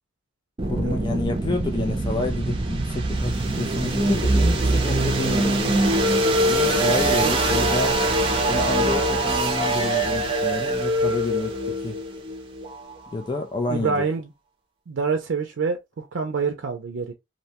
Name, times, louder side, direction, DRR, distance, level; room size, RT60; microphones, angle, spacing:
sound 1, 0.6-13.4, right 1 dB, 30° right, 0.5 m, -23 dB
voice 1, 0.7-6.1 6.4-8.0 8.5-12.0 13.1-14.1, left 3 dB, 25° left, 0.3 m, -29 dB
voice 2, 13.7-14.3 14.9-17.1, right 5 dB, 80° right, 0.4 m, -26 dB
2.6 x 2.1 x 2.8 m
head